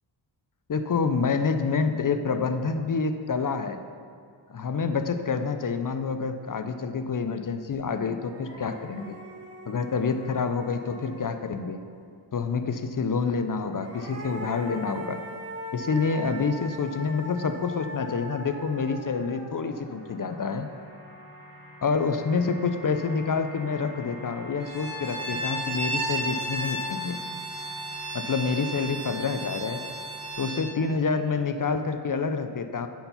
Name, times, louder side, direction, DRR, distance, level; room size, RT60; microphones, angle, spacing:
voice 1, 0.7-3.8 4.5-9.2 9.7-11.8 12.3-15.2 15.7-20.7 21.8-27.2 28.1-29.8 30.4-32.9, left 5 dB, 45° left, 8 dB, 0.5 m, -27 dB
sound 1, 7.7-7.8 8.2-11.8 13.5-20.8, equal, 30° right, 1.5 m, -42 dB
sound 2, 18.3-30.3, left 2 dB, 50° right, 2.1 m, -46 dB
Bowed string instrument, 24.6-30.7, right 1 dB, 90° right, 1.6 m, -33 dB
9.3 x 4.4 x 5.6 m, 2.2 s
cardioid pair, 55°, 48 cm